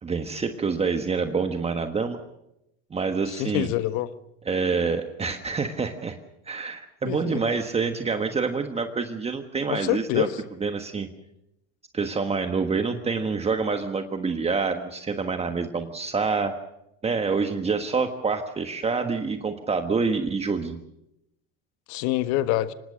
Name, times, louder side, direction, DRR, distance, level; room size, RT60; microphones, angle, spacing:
voice 1, 0.0-2.2 2.9-3.7 4.4-6.2 6.5-10.3 10.6-11.1 11.9-16.5 17.0-20.8, right 4 dB, 20° right, 1.4 m, -27 dB
voice 2, 3.3-4.1 7.0-7.4 9.7-10.4 21.9-22.7, left 14 dB, 65° left, 1.4 m, -26 dB
25.0 x 19.5 x 6.4 m
supercardioid pair, 120°, 31 cm